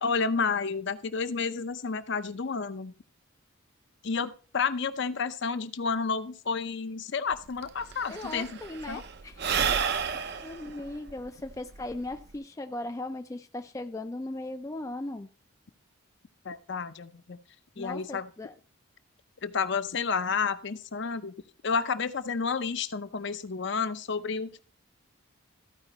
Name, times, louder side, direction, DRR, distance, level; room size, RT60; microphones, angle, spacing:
voice 1, 0.0-2.9 4.0-8.5 8.9-9.0 16.4-17.4 17.8-18.3 19.4-21.3 21.6-24.6, left 5 dB, 55° left, 11 dB, 0.6 m, -30 dB
Sigh / Breathing, 7.3-7.4 7.6-12.4, right 6 dB, 50° right, 0.6 m, -31 dB
voice 2, 8.1-9.5 10.4-15.3 17.8-18.5, left 2 dB, 15° left, 6 dB, 0.3 m, -38 dB
14.0 x 4.9 x 4.2 m, 0.38 s
head